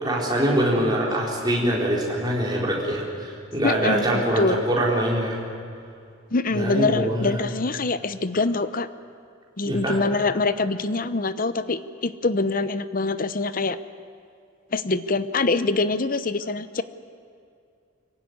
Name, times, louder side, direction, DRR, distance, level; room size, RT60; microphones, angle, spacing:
voice 1, 0.0-5.4 6.5-7.4 9.7-10.0, right 1 dB, 20° right, -3 dB, 4.4 m, -24 dB
voice 2, 3.6-4.6 6.3-8.9 9.6-13.8 14.7-16.8, left 3 dB, 45° left, 13 dB, 0.8 m, -24 dB
25.0 x 16.0 x 9.6 m, 2.4 s
head